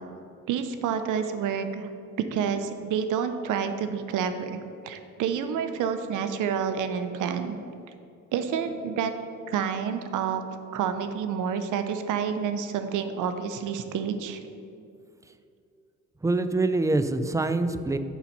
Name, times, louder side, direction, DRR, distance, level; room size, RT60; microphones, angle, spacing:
voice 1, 0.5-1.9 2.3-7.6 8.3-9.1 9.5-10.4 10.7-14.4, right 7 dB, 80° right, 9 dB, 0.7 m, -29 dB
voice 2, 16.2-18.0, right 2 dB, 10° right, 10 dB, 0.4 m, -25 dB
7.2 x 5.3 x 5.8 m, 2.5 s
cardioid pair, 90°, 30 cm